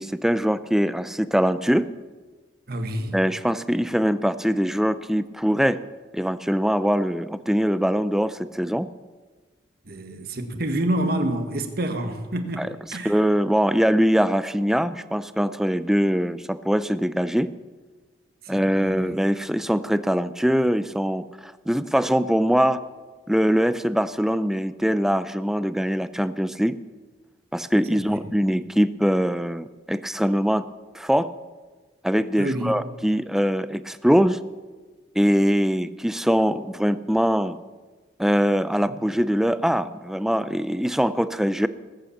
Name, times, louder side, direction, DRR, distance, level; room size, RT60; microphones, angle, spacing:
voice 1, 0.0-1.9 3.1-5.8 6.1-8.9 12.6-17.5 18.5-22.8 23.3-26.8 27.5-30.7 30.9-31.3 32.0-34.4 35.2-37.6 38.2-41.7, equal, ahead, 0.4 m, -22 dB
voice 2, 2.7-3.2 9.9-12.6 12.9-13.2 18.5-19.1 27.9-28.2 32.4-32.8 38.9-39.0, right 1 dB, 55° right, 1.5 m, -28 dB
19.5 x 8.6 x 7.2 m
head